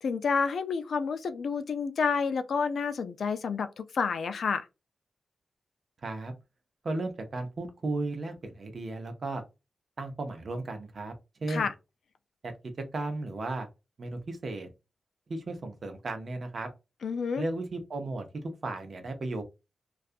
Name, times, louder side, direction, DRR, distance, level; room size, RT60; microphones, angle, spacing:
voice 1, 0.0-4.7 11.5-11.7 17.0-17.4, left 5 dB, 70° left, 0.3 m, -29 dB
voice 2, 6.0-6.3 6.8-9.4 10.0-11.1 11.4-11.7 12.4-12.5 12.9-13.7 14.0-14.7 15.3-16.7 17.4-19.4, right 2 dB, 50° right, 0.6 m, -35 dB
2.3 x 2.3 x 2.5 m
wide cardioid pair, 135°, 0 cm